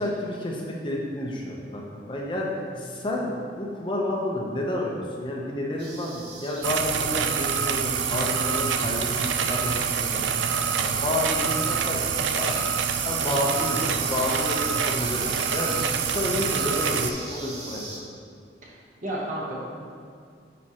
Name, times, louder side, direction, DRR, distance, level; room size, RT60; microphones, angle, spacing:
voice 1, 0.0-2.5 2.8-10.2 10.8-12.0 12.3-12.5 13.0-15.8 16.1-17.8, left 1 dB, 25° left, -2 dB, 0.7 m, -30 dB
sound 1, 5.8-18.0, right 2 dB, 65° right, 1.2 m, -40 dB
sound 2, 6.6-17.1, right 7 dB, 85° right, 0.4 m, -26 dB
voice 2, 19.0-19.6, right 1 dB, 45° right, -4 dB, 1.2 m, -32 dB
9.2 x 4.3 x 2.9 m, 2.2 s
head